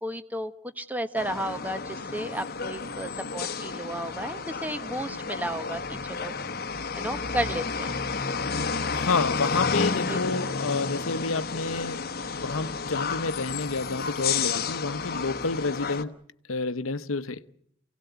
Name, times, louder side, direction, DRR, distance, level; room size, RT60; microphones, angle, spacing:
voice 1, 0.0-6.5 6.9-8.0 10.1-10.2, right 1 dB, 10° right, 1.2 m, -33 dB
sound 1, 1.2-16.0, left 5 dB, 50° left, 1.1 m, -31 dB
voice 2, 8.9-16.2 16.5-17.4, left 3 dB, 85° left, 0.9 m, -29 dB
27.5 x 17.5 x 8.1 m
head